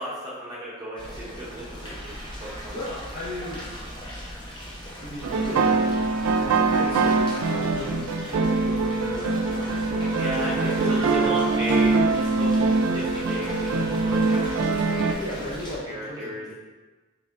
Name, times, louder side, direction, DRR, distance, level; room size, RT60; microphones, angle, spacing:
voice 1, 0.0-2.1 2.4-3.0 10.1-15.5 15.9-16.5, right 1 dB, 20° right, -8 dB, 0.6 m, -34 dB
sound 1, 1.0-15.8, equal, 20° left, 0.6 m, -39 dB
voice 2, 2.7-3.6 5.0-6.0 6.3-9.8 10.4-11.5 15.0-16.5, left 1 dB, 70° left, -9 dB, 0.9 m, -36 dB
sound 2, 5.2-15.1, right 3 dB, 80° right, 0.4 m, -23 dB
3.5 x 2.5 x 3.2 m, 1.2 s
head